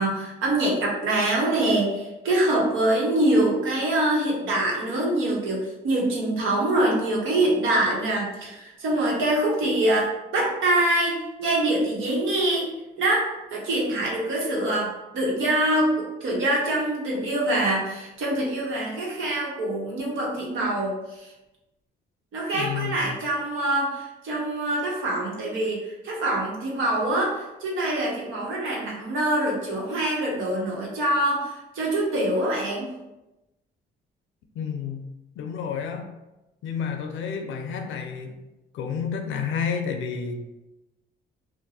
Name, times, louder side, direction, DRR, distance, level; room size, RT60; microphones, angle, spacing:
voice 1, 0.0-12.7 13.0-21.3 22.3-32.9, right 1 dB, 80° right, -3 dB, 1.0 m, -24 dB
voice 2, 22.5-23.2 34.6-35.1 35.4-36.1 36.6-38.3 38.7-40.4, left 6 dB, 75° left, 5 dB, 0.5 m, -30 dB
2.6 x 2.1 x 4.0 m, 1.0 s
cardioid pair, 90°, 20 cm